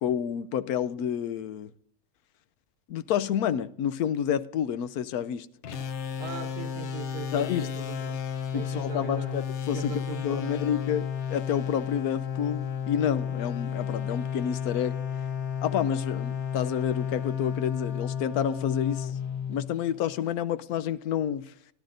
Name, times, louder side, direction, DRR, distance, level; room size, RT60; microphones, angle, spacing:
voice 1, 0.0-1.7 2.9-5.5 7.3-7.7 8.5-15.0 15.6-19.1 19.5-21.5, left 9 dB, 80° left, 1.1 m, -29 dB
sound 1, 5.6-20.2, left 8 dB, 55° left, 0.9 m, -32 dB
voice 2, 6.1-8.2 8.5-9.4 9.7-10.6, right 5 dB, 85° right, 1.6 m, -39 dB
17.5 x 11.0 x 2.6 m
omnidirectional pair, 1.6 m